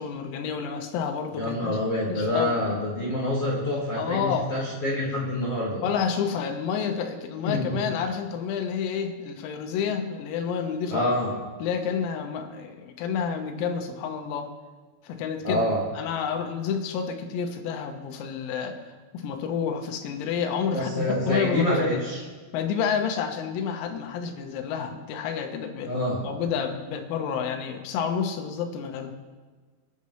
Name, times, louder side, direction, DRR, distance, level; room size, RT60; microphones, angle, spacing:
voice 1, 0.0-2.6 4.0-4.5 5.8-11.1 11.6-14.5 15.0-15.6 16.0-18.8 19.1-22.0 22.5-25.9 26.2-29.1, left 7 dB, 85° left, 5 dB, 4.0 m, -29 dB
voice 2, 1.3-5.8 7.4-7.6 10.9-11.3 15.4-15.8 20.7-22.2 25.8-26.2, left 1 dB, 55° left, -5 dB, 1.7 m, -26 dB
27.0 x 9.9 x 3.2 m, 1.4 s
omnidirectional pair, 6.0 m